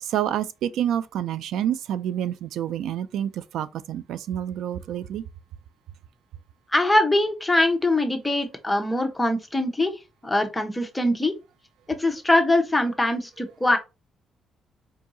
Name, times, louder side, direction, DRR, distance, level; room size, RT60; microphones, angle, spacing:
voice 1, 0.0-5.2, right 10 dB, 80° right, 0.3 m, -28 dB
voice 2, 6.7-9.9 10.2-11.3 11.9-13.8, left 1 dB, 10° left, 0.8 m, -22 dB
4.6 x 2.7 x 2.6 m
cardioid pair, 90°, 0 cm